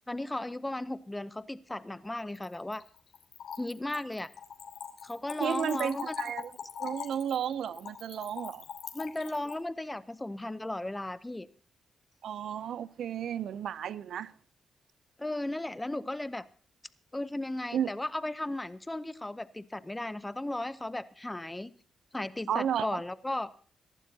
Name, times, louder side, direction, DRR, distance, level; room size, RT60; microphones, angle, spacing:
voice 1, 0.1-2.8 3.6-4.3 5.0-6.1 8.9-11.5 15.2-16.4 17.1-21.7 22.1-23.5, left 1 dB, 10° left, 0.7 m, -35 dB
Splash splatter / Trickle dribble, 2.2-9.6, left 7 dB, 80° left, 2.9 m, -42 dB
voice 2, 5.4-6.5 6.8-8.6 12.2-14.3 17.7-17.9 22.5-23.0, right 9 dB, 75° right, 0.5 m, -33 dB
23.5 x 11.5 x 2.8 m
cardioid pair, 110°, 0 cm